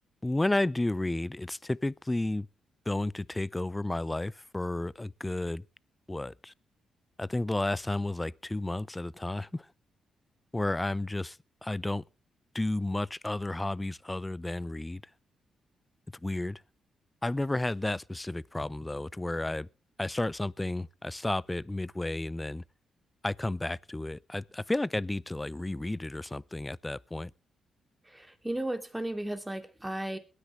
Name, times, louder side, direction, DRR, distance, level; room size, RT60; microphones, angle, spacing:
voice 1, 0.2-2.5 2.9-5.6 6.1-6.5 7.2-9.7 10.5-11.4 11.6-12.0 12.5-15.0 16.2-16.6 17.2-19.7 20.0-22.6 23.2-27.3, left 2 dB, 15° left, 0.5 m, -32 dB
voice 2, 28.1-30.2, right 1 dB, 10° right, 2.7 m, -35 dB
21.5 x 9.9 x 3.2 m
supercardioid pair, 65°, 0 cm